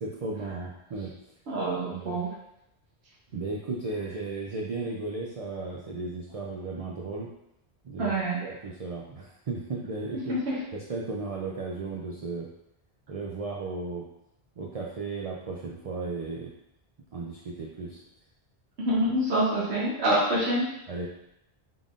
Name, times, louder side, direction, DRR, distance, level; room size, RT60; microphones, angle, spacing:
voice 1, 0.0-1.1 1.9-2.2 3.3-7.3 7.8-8.1 8.4-10.4 10.7-12.5 13.1-14.1 14.6-16.5 17.1-18.0 20.9-21.1, right 3 dB, 55° right, -2 dB, 0.4 m, -35 dB
voice 2, 1.5-2.3 8.0-8.4 10.3-10.6 18.8-20.7, right 1 dB, 85° right, -7 dB, 1.2 m, -26 dB
3.8 x 3.6 x 2.4 m, 0.83 s
omnidirectional pair, 1.1 m